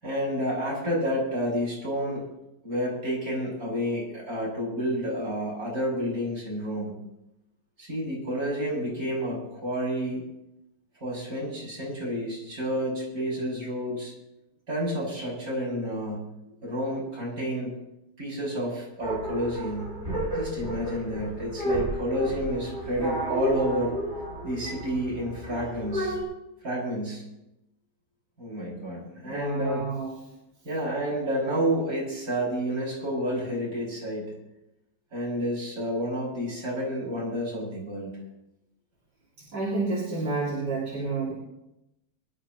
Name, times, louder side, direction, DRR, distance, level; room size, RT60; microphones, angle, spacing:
voice 1, 0.0-2.2 2.6-6.9 7.8-10.3 11.0-14.1 14.7-16.3 16.6-17.7 18.2-20.0 20.3-23.9 24.4-26.2 26.6-27.2 28.4-29.8 30.6-34.3 35.1-38.1, equal, 55° right, -5 dB, 7.4 m, -30 dB
sound 1, 19.0-26.2, right 1 dB, 30° right, 6.2 m, -32 dB
voice 2, 29.2-30.1 39.5-41.3, right 3 dB, 80° right, -6 dB, 3.4 m, -29 dB
23.5 x 12.0 x 3.1 m, 0.90 s
omnidirectional pair, 1.8 m